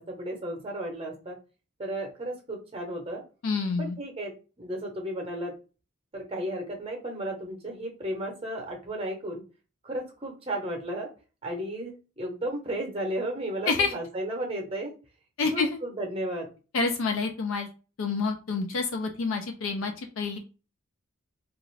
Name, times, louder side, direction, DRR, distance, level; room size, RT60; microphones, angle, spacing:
voice 1, 0.0-1.4 1.8-3.2 3.8-5.5 6.1-9.4 9.8-11.1 11.4-14.9 15.5-16.5, right 1 dB, 25° right, 1 dB, 0.7 m, -34 dB
voice 2, 3.4-4.0 13.7-13.9 15.4-15.8 16.7-17.7 18.0-20.4, left 4 dB, 70° left, 4 dB, 0.4 m, -28 dB
2.4 x 2.4 x 3.1 m, 0.33 s
head